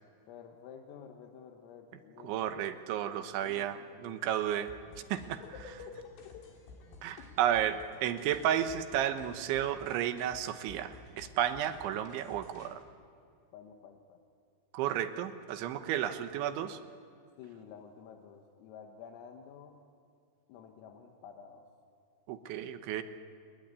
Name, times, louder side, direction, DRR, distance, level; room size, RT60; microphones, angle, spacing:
voice 1, 0.3-2.6 3.1-4.4 5.4-6.5 7.2-7.3 13.5-14.2 17.4-19.8 20.5-21.7, left 7 dB, 85° left, 3 dB, 4.2 m, -51 dB
voice 2, 2.2-4.7 5.1-5.4 7.0-12.8 14.7-16.8 22.3-23.0, right 10 dB, 75° right, 9 dB, 3.3 m, -32 dB
sound 1, 4.7-12.7, left 3 dB, 65° left, 5.5 m, -54 dB
29.5 x 20.5 x 9.6 m, 2.3 s
omnidirectional pair, 5.8 m